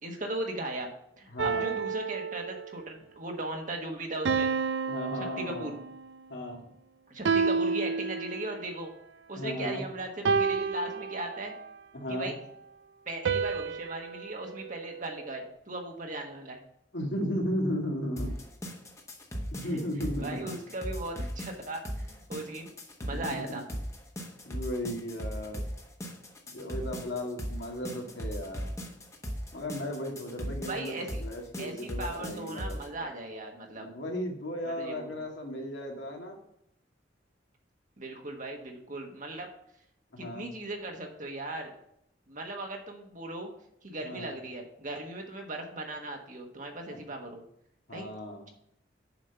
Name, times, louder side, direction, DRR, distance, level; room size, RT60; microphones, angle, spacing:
voice 1, 0.0-0.9 1.2-4.5 5.4-5.7 7.1-8.9 9.3-11.5 12.1-12.3 13.1-16.6 19.6-19.8 20.2-22.7 23.0-23.6 30.7-31.2 31.6-33.9 34.6-35.2 38.0-39.5 40.2-41.7 42.3-43.5 43.8-47.4 47.9-48.1, right 2 dB, 45° right, 2 dB, 1.3 m, -38 dB
voice 2, 1.3-1.7 4.9-5.7 6.3-6.6 9.4-9.8 11.9-12.3 16.9-18.3 19.6-20.4 23.1-23.4 24.5-25.6 26.5-28.6 29.5-32.8 33.7-36.4 40.1-40.5 44.0-44.3 46.9-47.0 47.9-48.5, equal, 75° left, 1 dB, 2.0 m, -35 dB
sound 1, 1.4-2.9 4.2-6.1 7.2-8.7 10.2-11.7 13.2-15.5, right 5 dB, 75° right, 0.4 m, -31 dB
sound 2, 18.2-32.9, equal, 15° left, 1.2 m, -38 dB
7.1 x 5.2 x 6.9 m, 0.76 s
head